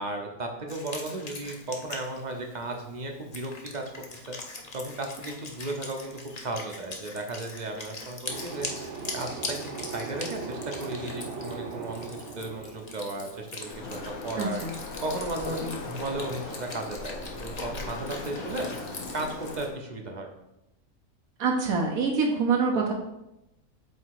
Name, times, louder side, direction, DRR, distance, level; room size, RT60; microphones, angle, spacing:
voice 1, 0.0-3.8 4.1-14.6 15.0-18.7 19.1-20.3, right 2 dB, 40° right, 2 dB, 0.7 m, -35 dB
Wind instrument woodwind instrument, 0.7-19.7, left 3 dB, 35° left, 0.7 m, -42 dB
sound 1, 8.3-14.0, right 4 dB, 60° right, 1.1 m, -39 dB
Waves surf, 13.6-19.7, left 3 dB, 80° left, 1.4 m, -38 dB
voice 2, 14.4-14.7 21.4-22.9, right 4 dB, 85° right, 0 dB, 1.3 m, -25 dB
8.0 x 2.9 x 4.6 m, 0.88 s
omnidirectional pair, 1.5 m